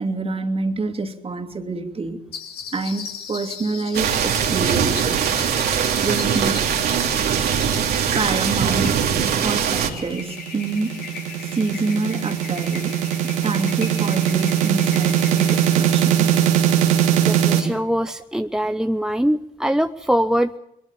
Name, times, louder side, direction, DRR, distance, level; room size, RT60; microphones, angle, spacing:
voice 1, 0.0-2.2 2.7-5.4 6.0-6.6 8.1-9.0 9.4-11.1 11.4-12.9 13.4-16.3, right 3 dB, 30° right, 4 dB, 3.0 m, -27 dB
sound 1, 2.3-17.5, left 7 dB, 60° left, 3.6 m, -38 dB
sound 2, 3.9-9.9, right 8 dB, 60° right, 2.7 m, -21 dB
sound 3, 9.8-17.6, right 10 dB, 75° right, 2.3 m, -20 dB
voice 2, 17.2-20.6, equal, 5° right, 9 dB, 0.8 m, -22 dB
23.5 x 22.5 x 7.3 m, 0.80 s
figure-of-eight pair, 45°, 18 cm